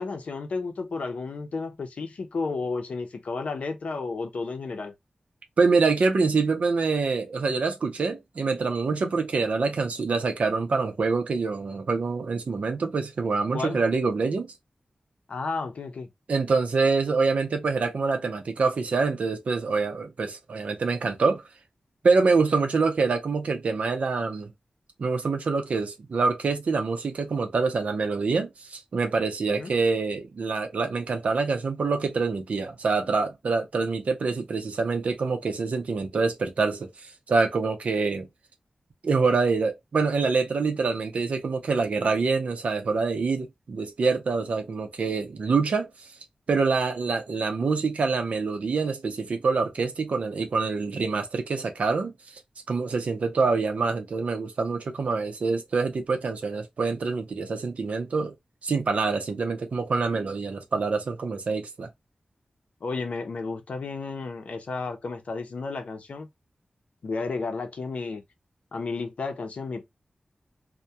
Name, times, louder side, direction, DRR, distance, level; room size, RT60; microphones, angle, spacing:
voice 1, 0.0-4.9 13.5-13.8 15.3-16.1 29.5-29.7 62.8-66.3 67.0-68.2 68.7-69.9, left 4 dB, 75° left, 0.6 m, -32 dB
voice 2, 5.6-14.5 16.3-21.4 22.0-24.5 25.0-38.3 39.0-45.9 46.5-52.1 52.7-58.3 58.6-61.9, right 4 dB, 80° right, 0.6 m, -25 dB
2.2 x 2.1 x 2.7 m
wide cardioid pair, 85°, 2 cm